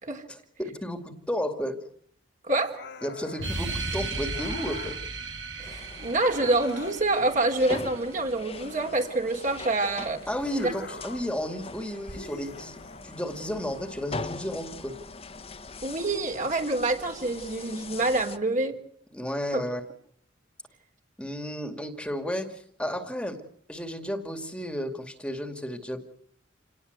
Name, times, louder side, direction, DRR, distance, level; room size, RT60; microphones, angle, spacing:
voice 1, 0.3-1.8 3.0-5.0 10.3-12.8 13.0-14.9 19.1-19.8 21.2-23.4 23.7-26.0, equal, 5° left, 7 dB, 2.4 m, -33 dB
voice 2, 2.4-2.8 5.6-10.3 10.6-10.7 15.8-18.8 19.5-19.6, right 2 dB, 45° right, 3 dB, 3.6 m, -26 dB
sound 1, 2.6-3.5 4.3-5.0 6.2-7.2 8.5-9.6 10.4-11.3 12.1-13.1, left 3 dB, 60° left, 2.8 m, -43 dB
sound 2, 3.4-8.4, right 3 dB, 80° right, 7.4 m, -35 dB
sound 3, 5.6-18.4, left 3 dB, 30° left, 1.7 m, -42 dB
28.5 x 19.5 x 8.1 m, 0.66 s
head